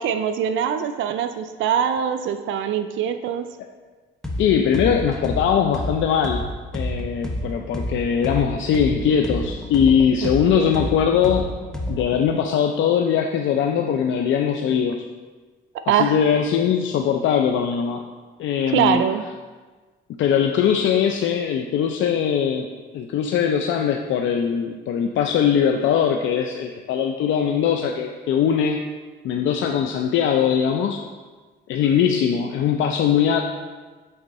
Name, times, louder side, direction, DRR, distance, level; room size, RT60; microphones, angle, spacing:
voice 1, 0.0-3.5 10.2-10.7 15.9-16.2 18.7-19.2, right 8 dB, 80° right, 9 dB, 0.4 m, -23 dB
sound 1, 4.2-4.4 4.7-8.4 8.7-12.2, left 1 dB, 5° left, 0.9 m, -28 dB
voice 2, 4.4-6.4 6.7-11.5 11.9-15.0 15.9-18.0 18.4-19.0 20.2-22.7 22.9-28.8 29.2-31.0 31.7-33.4, left 8 dB, 75° left, 3 dB, 0.5 m, -21 dB
7.8 x 3.6 x 4.1 m, 1.4 s
cardioid pair, 90°, 20 cm